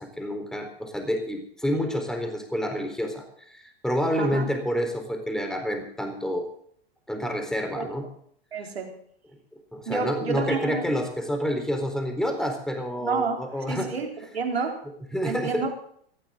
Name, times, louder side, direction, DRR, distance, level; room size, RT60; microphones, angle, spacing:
voice 1, 0.0-6.5 7.1-8.1 9.7-13.9 15.1-15.6, equal, ahead, 5 dB, 4.1 m, -28 dB
voice 2, 4.2-4.5 7.7-7.9 8.5-8.9 9.9-10.9 13.0-13.4 13.7-14.1 14.3-14.8 15.2-15.7, right 5 dB, 85° right, 2 dB, 4.1 m, -29 dB
18.5 x 15.0 x 3.9 m, 0.64 s
hypercardioid pair, 100°, 30 cm